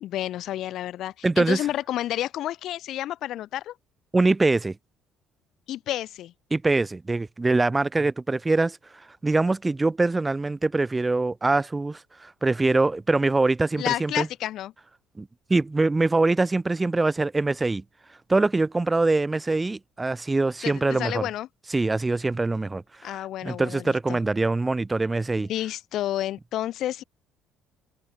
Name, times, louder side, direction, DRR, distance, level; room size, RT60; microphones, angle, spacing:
voice 1, 0.0-3.7 5.7-6.3 13.8-14.7 20.6-21.5 23.0-24.2 25.5-27.0, left 13 dB, 65° left, 0.5 m, -30 dB
voice 2, 1.2-1.6 4.1-4.8 6.5-8.8 9.2-14.3 15.2-17.8 18.3-21.3 21.7-25.5, right 3 dB, 15° right, 0.4 m, -23 dB
cardioid pair, 105°, 0 cm